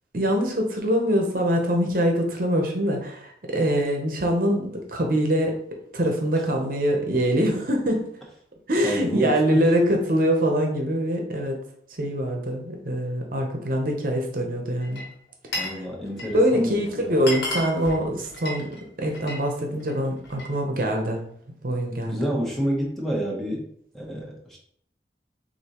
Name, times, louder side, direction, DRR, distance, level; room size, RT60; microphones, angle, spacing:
voice 1, 0.1-5.6 5.9-8.1 8.7-11.6 12.0-15.0 15.7-15.8 16.3-18.7 19.0-21.3 21.6-22.2, equal, 50° right, 2 dB, 0.8 m, -24 dB
voice 2, 8.8-9.7 15.5-17.1 22.1-23.7 23.9-24.6, equal, ahead, -3 dB, 0.9 m, -29 dB
Glass, 14.8-15.8 16.1-16.5 16.9-17.0 17.2-19.4 19.8-20.6, left 1 dB, 70° left, 1.3 m, -33 dB
6.6 x 2.7 x 3.0 m, 0.66 s
head